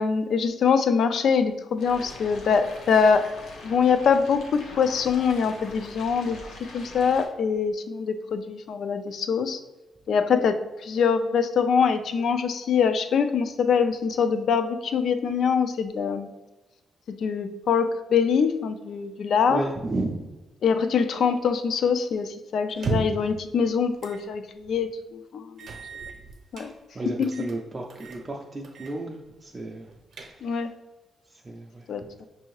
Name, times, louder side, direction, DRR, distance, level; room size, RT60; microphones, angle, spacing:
voice 1, 0.0-3.3 3.6-6.4 6.7-9.6 10.1-16.3 17.1-19.6 20.6-25.7 26.5-26.7 27.4-27.5 30.4-30.7 31.9-32.2, left 6 dB, 65° left, 9 dB, 0.3 m, -24 dB
sound 1, 1.8-7.3, left 2 dB, 85° left, 0.7 m, -43 dB
voice 2, 19.5-20.3 26.9-29.9 30.4-30.7 31.3-32.1, right 2 dB, 25° right, -1 dB, 0.4 m, -33 dB
sound 2, 22.7-23.3 24.0-24.2 24.6-24.7 25.6-26.7 27.2-27.6 27.9-28.2 28.6-29.0 29.3-29.4 29.9-30.6, right 3 dB, 60° right, 0.7 m, -34 dB
5.4 x 2.7 x 3.1 m, 1.1 s
cardioid pair, 130°, 0 cm